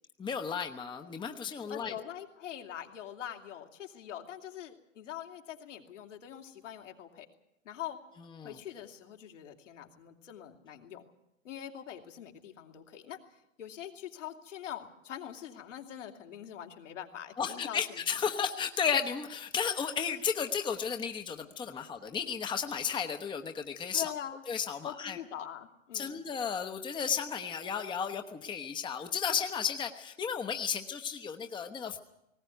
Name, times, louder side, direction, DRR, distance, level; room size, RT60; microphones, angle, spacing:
voice 1, 0.2-2.0 8.4-8.5 17.4-24.0 24.5-25.2 25.9-32.0, left 7 dB, 10° left, 6 dB, 1.0 m, -33 dB
voice 2, 1.7-7.3 7.6-8.0 8.4-11.0 11.4-18.0 23.9-24.4 24.8-26.2, left 10 dB, 70° left, 3 dB, 2.9 m, -43 dB
19.5 x 17.5 x 9.2 m, 0.86 s
hypercardioid pair, 110°, 38 cm